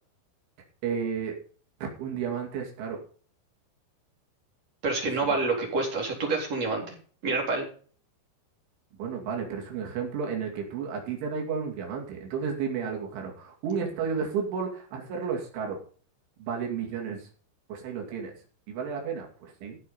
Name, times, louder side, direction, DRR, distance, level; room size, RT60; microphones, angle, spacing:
voice 1, 0.8-1.3 1.8-3.0 5.3-5.4 9.0-15.8 16.4-17.3 17.7-19.8, right 6 dB, 80° right, 1 dB, 5.0 m, -32 dB
voice 2, 4.8-6.9 7.2-7.7, right 3 dB, 35° right, 0 dB, 4.4 m, -27 dB
15.0 x 7.0 x 5.5 m, 0.42 s
omnidirectional pair, 5.4 m